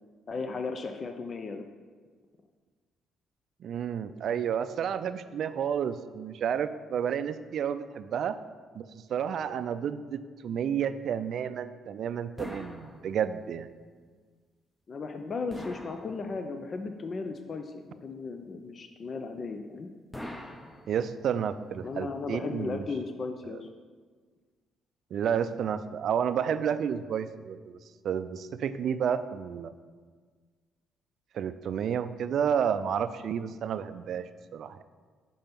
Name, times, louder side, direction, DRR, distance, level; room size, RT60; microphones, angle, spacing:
voice 1, 0.3-1.7 14.9-19.9 21.8-23.7, left 4 dB, 45° left, 6 dB, 0.5 m, -36 dB
voice 2, 3.6-8.4 8.8-13.7 20.9-22.9 25.1-27.8 28.0-29.7 31.3-34.8, right 8 dB, 65° right, 13 dB, 0.4 m, -31 dB
sound 1, 12.4-13.6 15.5-16.7 20.1-21.4, equal, 10° left, 0.8 m, -43 dB
5.4 x 5.2 x 5.9 m, 1.5 s
supercardioid pair, 75°, 0 cm